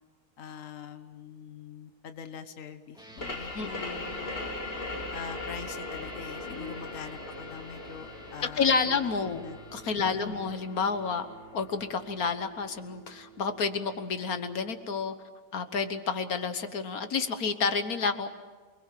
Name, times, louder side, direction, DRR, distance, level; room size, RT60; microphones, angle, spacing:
voice 1, 0.4-4.4 5.1-9.6 10.0-10.5, left 6 dB, 65° left, 8 dB, 1.6 m, -43 dB
sound 1, 2.9-14.8, right 3 dB, 5° right, 2.0 m, -52 dB
sound 2, 3.2-12.5, left 2 dB, 40° left, 2.0 m, -40 dB
voice 2, 8.6-9.4 9.7-11.3 11.5-15.1 15.5-18.3, left 5 dB, 80° left, 9 dB, 1.7 m, -30 dB
28.0 x 21.0 x 7.6 m, 1.4 s
omnidirectional pair, 1.5 m